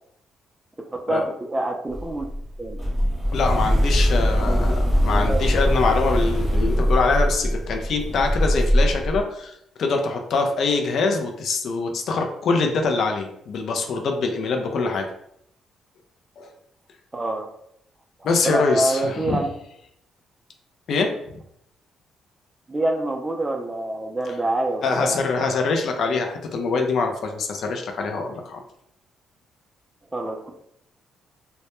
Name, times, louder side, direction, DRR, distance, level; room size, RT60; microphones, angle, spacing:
voice 1, 0.8-2.3 2.6-2.8 4.5-4.7 5.1-5.4 17.1-17.5 18.2-19.5 22.7-25.2 30.1-30.5, right 2 dB, 15° right, 3 dB, 0.4 m, -26 dB
sound 1, 1.9-9.2, equal, ahead, 0.9 m, -21 dB
voice 2, 3.3-15.1 16.4-16.5 18.2-19.4 20.9-21.2 24.8-28.6, left 4 dB, 65° left, 3 dB, 0.4 m, -24 dB
2.1 x 2.0 x 2.9 m, 0.75 s
cardioid pair, 90°, 0 cm